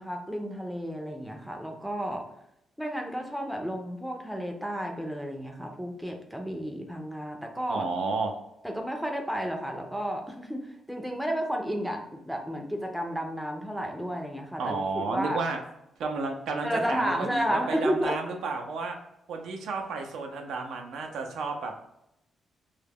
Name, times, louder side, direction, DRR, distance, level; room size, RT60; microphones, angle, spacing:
voice 1, 0.0-2.2 2.8-7.8 8.6-15.4 16.6-18.2, equal, ahead, 2 dB, 0.4 m, -32 dB
voice 2, 7.7-8.3 14.6-15.6 16.0-19.0 19.3-21.8, right 4 dB, 85° right, 3 dB, 0.4 m, -32 dB
2.2 x 2.0 x 3.4 m, 0.82 s
cardioid pair, 120°, 0 cm